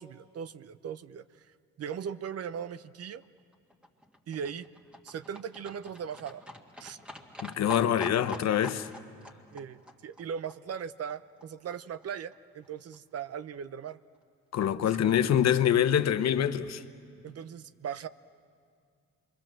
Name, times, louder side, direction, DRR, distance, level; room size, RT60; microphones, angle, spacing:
voice 1, 0.0-1.5 1.8-3.2 4.3-4.7 5.0-6.4 6.8-7.0 9.5-14.0 14.8-15.3 17.2-18.1, right 7 dB, 55° right, 0.7 m, -39 dB
Livestock farm animals working animals, 3.2-11.4 11.7-11.8 12.0-12.1 12.3-12.4 12.6-12.7 12.9-13.0 13.3-13.4 13.6-13.7 13.9-14.0, left 1 dB, 5° right, 1.9 m, -46 dB
voice 2, 7.4-8.9 14.5-16.8, left 10 dB, 60° left, 1.0 m, -25 dB
27.5 x 23.0 x 7.6 m
cardioid pair, 90°, 30 cm